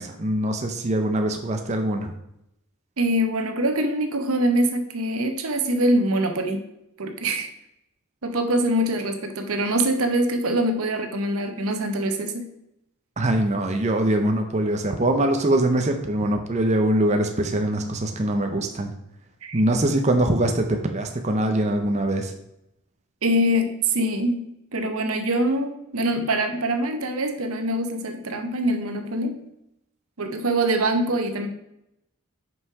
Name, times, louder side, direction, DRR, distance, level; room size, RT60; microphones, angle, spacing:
voice 1, 0.0-2.1 13.2-18.9 19.5-22.3, right 1 dB, 30° right, 4 dB, 0.6 m, -23 dB
voice 2, 3.0-6.6 7.0-7.5 8.2-12.5 19.4-19.6 23.2-29.4 30.2-31.5, right 1 dB, 80° right, 6 dB, 0.9 m, -24 dB
5.6 x 5.5 x 4.7 m, 0.82 s
head